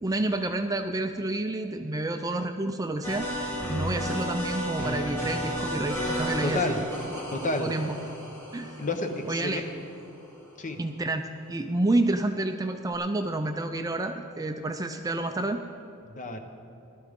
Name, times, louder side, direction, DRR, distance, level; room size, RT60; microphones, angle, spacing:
voice 1, 0.0-6.8 7.6-8.0 8.5-8.7 9.2-9.6 10.8-15.6, right 2 dB, 15° right, 6 dB, 0.4 m, -29 dB
sound 1, 3.0-10.2, equal, 15° left, 3.3 m, -33 dB
voice 2, 6.4-6.9 7.3-7.7 8.8-9.6 10.6-10.8 16.2-16.4, left 2 dB, 35° left, 5 dB, 1.0 m, -30 dB
18.0 x 12.5 x 3.7 m, 2.8 s
head